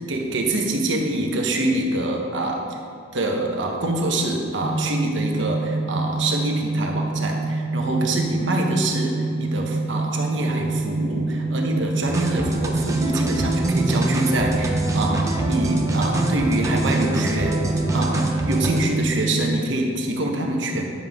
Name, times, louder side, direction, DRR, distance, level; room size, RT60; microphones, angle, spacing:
voice 1, 0.1-2.6 3.1-17.6 17.9-20.8, right 1 dB, 65° right, 1 dB, 1.2 m, -25 dB
sound 1, 4.6-19.6, right 3 dB, 35° right, 0.3 m, -26 dB
sound 2, 12.1-18.8, right 1 dB, 15° right, 0.8 m, -25 dB
10.0 x 7.2 x 3.7 m, 2.7 s
head